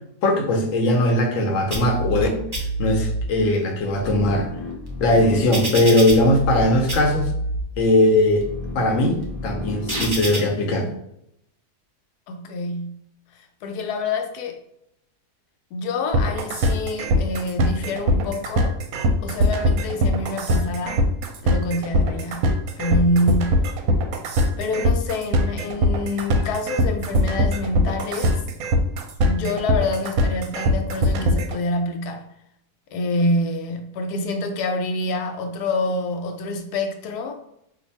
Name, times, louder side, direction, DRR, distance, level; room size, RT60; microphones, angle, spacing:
voice 1, 0.2-2.5 2.8-4.5 5.0-7.3 7.8-10.9, left 1 dB, 65° left, 0.9 m, -19 dB
sound 1, 1.7-2.2 2.5-3.2 3.8-6.6 6.9-7.6 8.2-10.4, right 1 dB, 40° right, 0.3 m, -28 dB
voice 2, 12.3-13.1 13.6-14.6 15.7-18.8 19.2-21.0 21.4-23.7 24.6-28.4 29.2-32.3 32.9-37.4, left 2 dB, 80° left, 1.1 m, -26 dB
sound 2, 16.1-31.6, equal, 70° right, 0.9 m, -21 dB
2.6 x 2.5 x 4.0 m
omnidirectional pair, 1.7 m